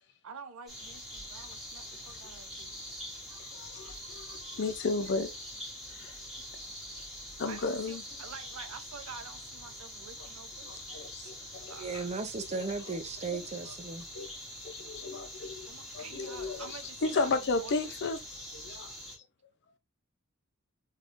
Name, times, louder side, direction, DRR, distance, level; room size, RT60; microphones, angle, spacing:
voice 1, 0.2-3.1 7.4-10.9 11.7-12.2 15.7-17.8, right 5 dB, 85° right, 0.6 m, -48 dB
sound 1, 0.7-19.2, equal, ahead, 1.7 m, -44 dB
voice 2, 3.3-5.3 5.9-6.2 7.4-8.0 10.7-12.0 12.4-13.0 13.3-13.4 14.1-14.3 14.6-18.2 18.5-18.9, left 3 dB, 55° left, 0.5 m, -34 dB
voice 3, 11.8-14.1 18.7-18.8, right 4 dB, 30° right, 0.6 m, -36 dB
3.5 x 3.3 x 2.5 m
head